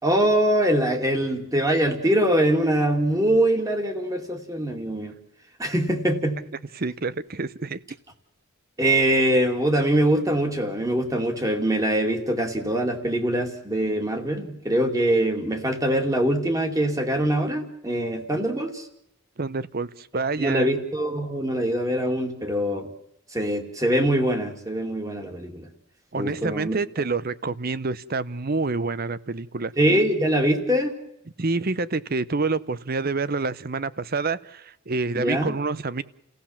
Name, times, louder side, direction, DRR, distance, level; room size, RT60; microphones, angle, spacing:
voice 1, 0.0-5.1 5.6-6.4 8.8-18.8 20.4-22.9 23.3-25.7 26.2-26.8 29.8-30.9 35.1-35.5, right 1 dB, 15° right, 5 dB, 2.5 m, -23 dB
voice 2, 6.7-7.8 19.4-20.7 26.1-29.7 31.4-36.0, right 3 dB, 45° right, 17 dB, 0.8 m, -27 dB
30.0 x 16.0 x 7.3 m, 0.80 s
head